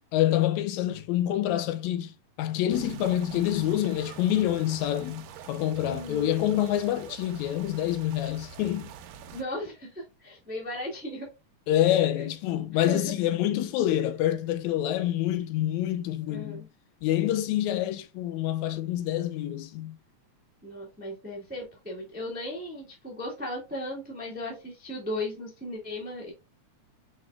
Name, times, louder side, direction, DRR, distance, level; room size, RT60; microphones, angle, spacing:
voice 1, 0.1-8.9 11.7-16.6 17.0-20.0, left 12 dB, 80° left, 1.8 m, -27 dB
sound 1, 2.7-9.4, right 8 dB, 80° right, 1.6 m, -45 dB
voice 2, 5.8-6.3 9.3-11.3 11.8-12.3 12.7-13.1 16.3-16.7 20.6-26.3, left 1 dB, 15° right, 0.3 m, -37 dB
5.0 x 3.8 x 2.3 m
omnidirectional pair, 3.4 m